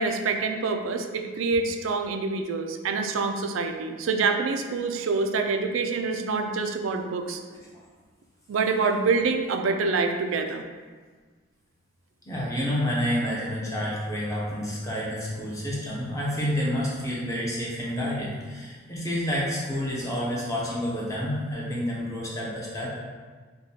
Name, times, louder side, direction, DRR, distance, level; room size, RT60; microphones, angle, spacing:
voice 1, 0.0-7.4 8.5-10.6, right 4 dB, 85° right, 6 dB, 0.4 m, -26 dB
voice 2, 12.2-23.0, equal, 15° left, -6 dB, 0.7 m, -29 dB
5.0 x 2.2 x 2.8 m, 1.5 s
head